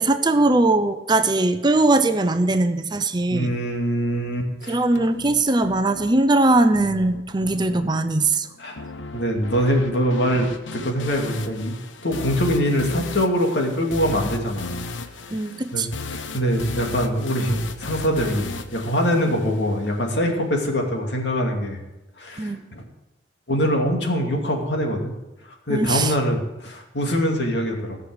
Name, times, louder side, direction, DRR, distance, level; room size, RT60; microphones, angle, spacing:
voice 1, 0.0-3.6 4.7-8.5 15.3-15.9 22.4-22.6 25.7-26.1, right 2 dB, 25° right, 9 dB, 0.7 m, -20 dB
voice 2, 3.3-4.7 8.6-8.8 9.1-11.8 12.0-14.8 15.7-21.8 22.2-22.8 23.5-25.1 25.5-28.0, equal, 65° left, 2 dB, 2.6 m, -23 dB
sound 1, 5.0-20.0, left 3 dB, 85° left, 1.0 m, -35 dB
16.5 x 6.6 x 8.0 m, 1.0 s
head